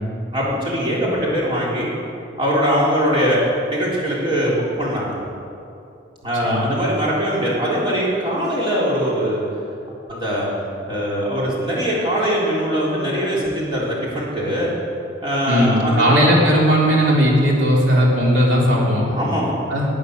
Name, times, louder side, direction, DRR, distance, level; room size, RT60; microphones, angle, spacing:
voice 1, 0.3-1.9 2.4-3.4 3.7-5.2 6.2-9.4 10.1-10.5 10.9-14.7 15.2-16.0 19.0-19.6, equal, 25° right, -6 dB, 3.6 m, -21 dB
voice 2, 15.5-19.1 19.7-19.8, equal, 80° right, -3 dB, 3.2 m, -17 dB
19.0 x 9.1 x 6.7 m, 2.7 s
head